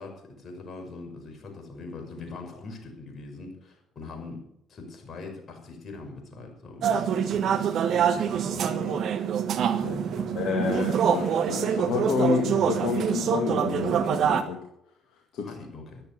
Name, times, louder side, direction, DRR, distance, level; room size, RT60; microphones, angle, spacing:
voice 1, 0.0-4.4 4.7-7.6 8.1-9.0 9.8-10.5 15.4-16.0, left 3 dB, 45° left, 3 dB, 6.2 m, -42 dB
sound 1, 6.8-14.4, right 8 dB, 60° right, 1.4 m, -25 dB
voice 2, 10.3-14.6 15.3-15.6, left 6 dB, 65° left, 2 dB, 2.1 m, -29 dB
13.5 x 11.5 x 6.7 m, 0.73 s
hypercardioid pair, 50°, 0 cm